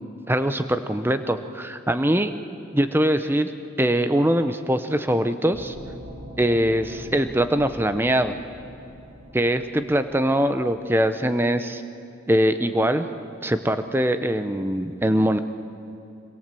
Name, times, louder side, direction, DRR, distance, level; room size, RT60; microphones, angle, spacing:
voice 1, 0.3-2.3 2.7-3.5 3.8-5.8 6.4-8.3 9.3-11.8 12.3-13.0 13.4-15.4, equal, 10° right, 9 dB, 0.8 m, -22 dB
sound 1, 5.5-11.1, equal, 65° right, 7.3 m, -43 dB
24.0 x 21.5 x 7.7 m, 2.7 s
head